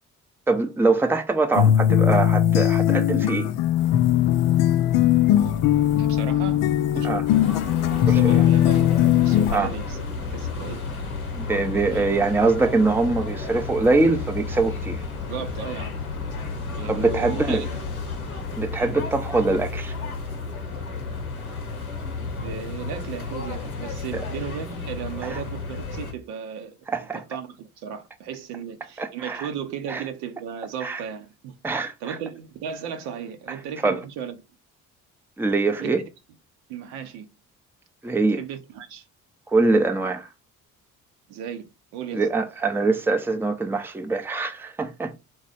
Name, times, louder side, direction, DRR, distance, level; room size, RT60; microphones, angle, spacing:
voice 1, 0.5-3.5 7.0-7.2 8.1-8.4 9.5-9.7 11.3-15.0 16.9-17.7 18.6-19.9 25.2-25.4 26.9-27.2 29.0-29.5 29.9-30.0 30.8-31.0 31.6-32.2 33.8-34.0 35.4-36.0 38.0-38.4 39.5-40.3 42.1-45.2, right 3 dB, 5° right, 0.6 m, -23 dB
sound 1, 1.6-9.6, left 11 dB, 50° left, 0.5 m, -19 dB
sound 2, 3.8-18.6, left 3 dB, 25° left, 0.9 m, -40 dB
voice 2, 6.0-6.6 6.9-7.2 7.9-10.0 10.3-10.9 11.7-12.2 15.3-16.0 16.7-17.7 22.4-34.4 35.8-35.9 36.7-37.3 38.4-39.1 41.3-42.3, right 8 dB, 65° right, 0.9 m, -36 dB
sound 3, 7.3-26.1, left 4 dB, 90° left, 0.8 m, -32 dB
3.8 x 3.1 x 4.0 m
figure-of-eight pair, 50°, 42 cm